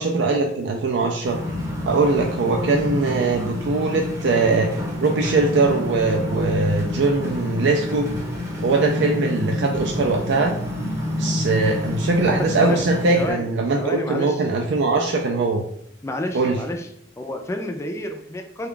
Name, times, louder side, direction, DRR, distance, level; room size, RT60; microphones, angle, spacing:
voice 1, 0.0-1.4 1.8-4.7 5.0-8.1 8.6-10.5 11.2-15.6 16.3-16.6, right 3 dB, 70° right, 1 dB, 0.4 m, -21 dB
sound 1, 1.2-13.3, left 1 dB, 15° right, 0.7 m, -28 dB
voice 2, 12.2-12.9 13.1-13.5 13.8-14.4 16.0-16.9 17.2-18.7, left 1 dB, 15° left, 4 dB, 0.3 m, -29 dB
3.4 x 2.3 x 3.6 m, 0.71 s
head